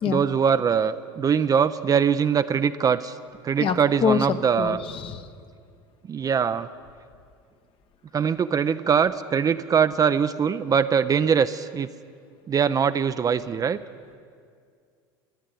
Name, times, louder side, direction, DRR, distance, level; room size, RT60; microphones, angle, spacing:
voice 1, 0.0-3.2 3.4-4.8 6.1-6.7 8.1-11.9 12.5-13.8, right 7 dB, 30° right, 11 dB, 0.5 m, -22 dB
voice 2, 3.6-4.3 4.6-5.3, left 6 dB, 50° left, 7 dB, 1.0 m, -25 dB
14.0 x 8.8 x 10.0 m, 2.2 s
hypercardioid pair, 80°, 12 cm